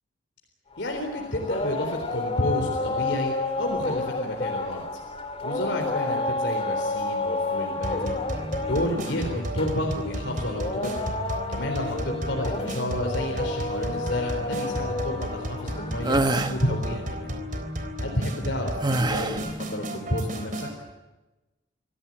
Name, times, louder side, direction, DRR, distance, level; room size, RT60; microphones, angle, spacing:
sound 1, 0.7-17.1, left 2 dB, 30° left, 2.2 m, -31 dB
voice 1, 0.8-4.9 5.4-8.1 8.6-11.1 11.5-16.2 16.5-17.4 18.0-20.7, left 1 dB, 60° left, 1 dB, 4.0 m, -30 dB
sound 2, 7.8-20.8, equal, 40° right, 3.7 m, -33 dB
sound 3, 16.0-16.6 18.8-19.5, right 2 dB, 20° right, 1.2 m, -24 dB
27.0 x 16.5 x 8.9 m, 1.1 s
head